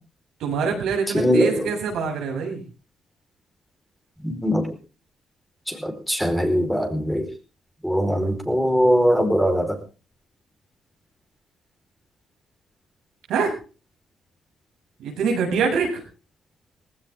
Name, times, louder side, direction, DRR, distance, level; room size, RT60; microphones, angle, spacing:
voice 1, 0.4-2.6 13.3-13.5 15.0-16.0, right 5 dB, 80° right, 1 dB, 7.6 m, -24 dB
voice 2, 1.1-1.5 4.2-4.6 5.8-7.2 7.8-9.8, equal, ahead, 4 dB, 4.7 m, -21 dB
18.5 x 16.5 x 3.7 m, 0.36 s
cardioid pair, 90°, 0 cm